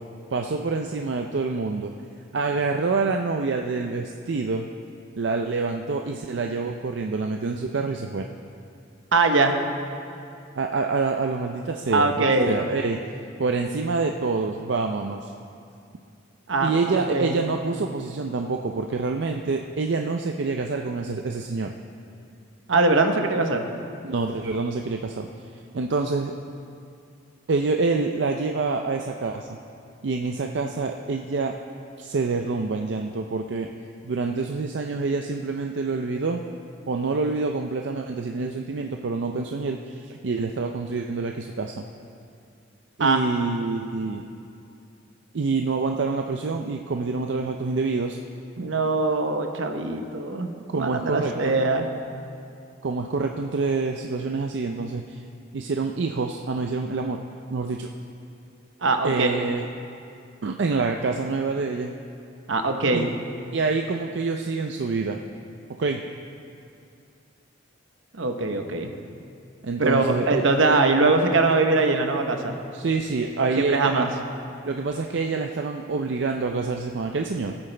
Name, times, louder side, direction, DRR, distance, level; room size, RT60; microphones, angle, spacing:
voice 1, 0.3-1.9 2.3-4.7 5.2-8.3 10.5-13.0 13.4-15.3 16.6-21.7 24.0-25.3 25.7-26.3 27.5-29.5 30.0-31.5 32.0-33.7 34.0-36.4 36.9-41.7 43.0-44.2 45.3-48.2 50.7-51.5 52.8-55.2 55.5-57.2 57.5-57.9 59.0-59.6 60.4-61.9 62.9-63.1 63.5-65.2 65.8-66.0 69.6-70.4 72.7-74.1 74.6-77.5, right 4 dB, 65° right, 3 dB, 0.5 m, -26 dB
voice 2, 9.1-9.6 11.9-12.6 16.5-17.3 22.7-23.7 43.0-43.2 48.6-51.9 58.8-59.4 62.5-63.1 68.1-68.9 69.9-72.6 73.4-74.1, right 3 dB, 80° right, 5 dB, 1.0 m, -22 dB
19.0 x 8.7 x 3.3 m, 2.5 s
head